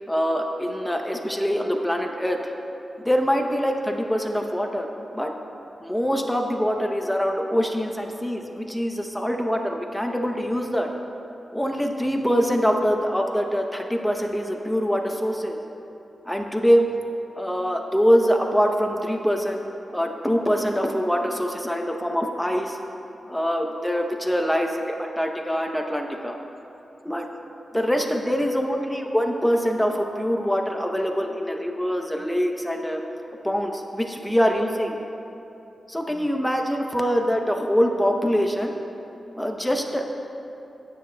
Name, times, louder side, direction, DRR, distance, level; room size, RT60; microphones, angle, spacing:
voice 1, 0.1-2.5 3.0-5.3 5.8-10.9 11.5-15.6 16.3-16.8 17.3-19.6 19.9-22.8 23.3-26.4 27.0-27.3 27.7-33.0 33.4-35.0 35.9-38.7 39.4-40.1, equal, 5° left, 2 dB, 0.6 m, -24 dB
24.5 x 9.3 x 2.2 m, 2.9 s
wide cardioid pair, 170°, 0 cm